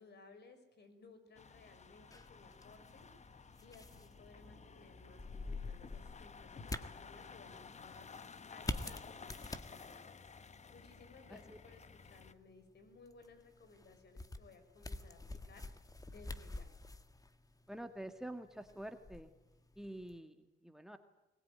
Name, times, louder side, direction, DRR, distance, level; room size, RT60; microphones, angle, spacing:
voice 1, 0.0-8.1 8.5-10.2 10.4-16.7, left 3 dB, 55° left, 9 dB, 6.0 m, -60 dB
sound 1, 1.3-12.3, left 5 dB, 35° left, 1.3 m, -54 dB
sound 2, 2.1-20.2, left 2 dB, 15° left, 1.7 m, -48 dB
voice 2, 17.7-19.3 19.8-21.0, right 1 dB, ahead, 8 dB, 1.9 m, -47 dB
22.0 x 20.5 x 9.6 m, 0.94 s
cardioid pair, 90°, 20 cm